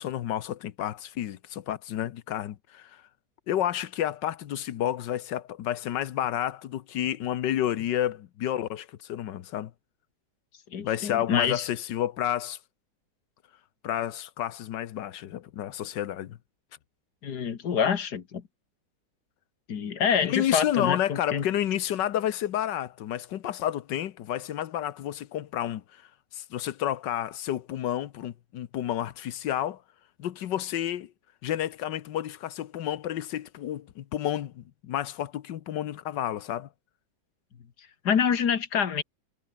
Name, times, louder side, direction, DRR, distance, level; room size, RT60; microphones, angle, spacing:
voice 1, 0.0-3.0 3.5-9.7 10.8-12.6 13.8-16.4 20.2-26.0 26.3-29.8 30.2-31.1 31.4-36.7, left 11 dB, 85° left, 1.6 m, -30 dB
voice 2, 10.7-11.7 17.2-18.4 19.7-21.4 38.0-39.0, left 7 dB, 65° left, 2.1 m, -26 dB
omnidirectional pair, 1.9 m